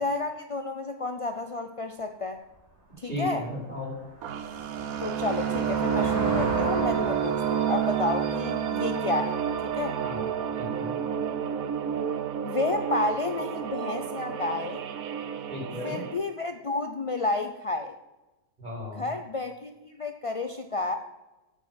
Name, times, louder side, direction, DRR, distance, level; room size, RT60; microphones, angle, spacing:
voice 1, 0.0-2.4 3.0-3.4 5.0-10.0 12.4-14.8 15.8-18.0 18.9-20.9, left 3 dB, 60° left, 7 dB, 0.3 m, -31 dB
sound 1, 2.5-2.6 3.1-9.7, right 2 dB, 50° right, 3.5 m, -38 dB
voice 2, 3.0-3.9 10.0-10.2 10.6-10.9 15.5-16.0 18.6-19.1, left 1 dB, 30° right, -4 dB, 4.8 m, -35 dB
sound 2, 4.2-16.2, right 8 dB, 80° right, 1.3 m, -29 dB
8.9 x 6.9 x 7.5 m, 1.1 s
omnidirectional pair, 1.5 m